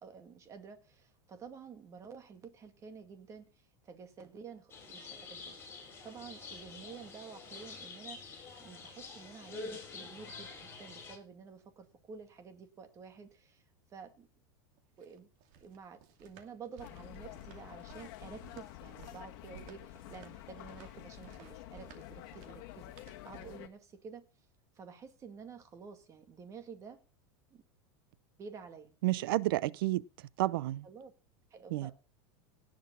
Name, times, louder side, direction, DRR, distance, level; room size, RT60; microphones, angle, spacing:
voice 1, 0.0-5.6 6.0-10.5 10.8-13.6 13.9-14.3 15.0-15.3 15.6-24.3 24.8-27.0 27.5-27.6 28.4-29.2 30.8-31.1 31.5-31.9, right 6 dB, 25° right, 2.1 m, -50 dB
sound 1, 4.7-11.2, left 4 dB, 20° left, 6.0 m, -47 dB
sound 2, 14.8-23.7, right 8 dB, 55° right, 2.5 m, -58 dB
sound 3, 16.8-23.7, left 15 dB, 60° left, 1.5 m, -49 dB
voice 2, 29.0-30.0 30.4-30.9 31.7-31.9, right 17 dB, 70° right, 0.6 m, -30 dB
18.0 x 6.3 x 5.6 m
supercardioid pair, 145°, 12 cm